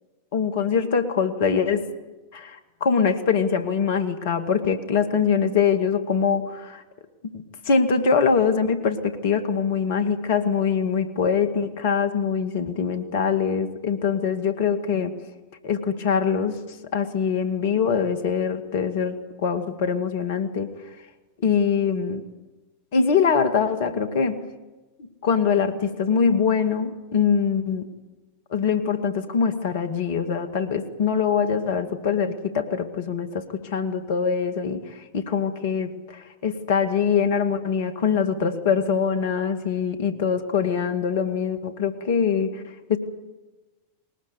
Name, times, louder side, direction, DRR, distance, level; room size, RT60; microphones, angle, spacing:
voice 1, 0.3-1.9 2.3-6.8 7.3-15.2 15.6-16.6 16.9-20.7 21.4-22.2 22.9-24.4 25.0-27.9 28.5-42.6 42.9-43.0, left 6 dB, 50° left, 9 dB, 2.2 m, -23 dB
21.0 x 20.0 x 8.4 m, 1.2 s
figure-of-eight pair, 90°, 0 cm